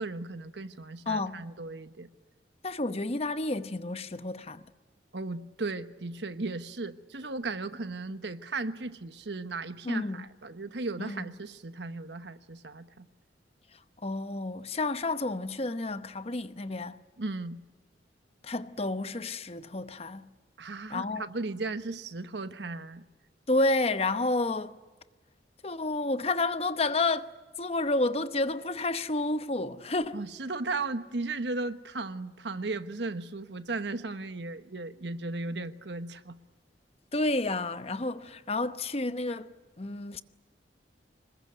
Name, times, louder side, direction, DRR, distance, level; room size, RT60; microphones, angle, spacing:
voice 1, 0.0-2.1 5.1-13.1 17.2-17.6 20.6-23.0 30.1-36.4, right 3 dB, 70° right, 1.2 m, -36 dB
voice 2, 1.1-1.5 2.6-4.6 9.8-10.2 11.0-11.2 13.7-17.0 18.4-20.3 20.9-21.2 23.5-24.8 25.6-27.3 27.6-30.2 37.1-40.2, left 2 dB, 35° left, 0.9 m, -30 dB
26.5 x 21.5 x 9.3 m
head